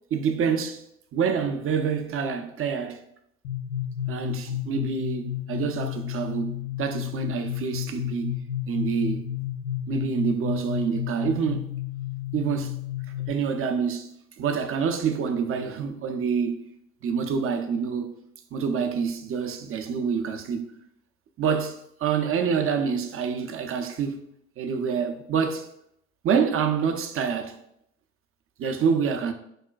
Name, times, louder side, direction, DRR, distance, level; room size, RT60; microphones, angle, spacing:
voice 1, 0.1-0.8 1.1-3.0 4.1-8.3 8.7-9.2 9.9-11.7 12.3-12.8 13.3-14.1 14.4-16.6 17.0-18.1 18.5-20.7 21.4-24.2 24.6-25.7 26.2-27.6 28.6-29.3, right 6 dB, 45° right, 0.5 m, -27 dB
sound 1, 3.4-13.3, left 11 dB, 70° left, 0.5 m, -31 dB
4.8 x 2.1 x 2.3 m
hypercardioid pair, 50°, 32 cm